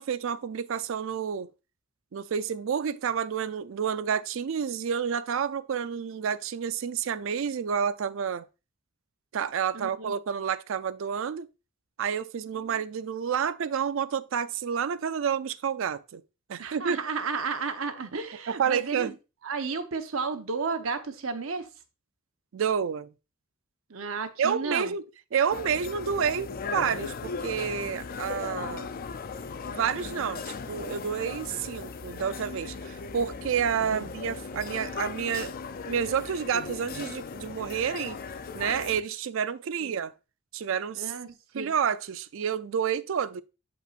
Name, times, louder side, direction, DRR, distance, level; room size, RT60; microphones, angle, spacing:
voice 1, 0.0-1.5 2.1-8.5 9.3-11.5 12.0-16.2 16.5-17.0 18.5-19.1 22.5-23.1 24.4-25.0 25.3-28.9 29.7-35.6 35.9-38.2 38.5-40.1 40.5-41.1 41.5-43.4, right 7 dB, 70° right, 0.4 m, -29 dB
voice 2, 9.7-10.1 16.6-19.1 19.4-21.7 23.9-24.9 28.6-28.8 33.8-34.1 39.8-39.9 41.0-41.3 41.5-41.7, right 4 dB, 85° right, 0.9 m, -33 dB
sound 1, 25.5-39.0, left 5 dB, 45° left, 0.4 m, -37 dB
7.6 x 5.4 x 2.5 m
head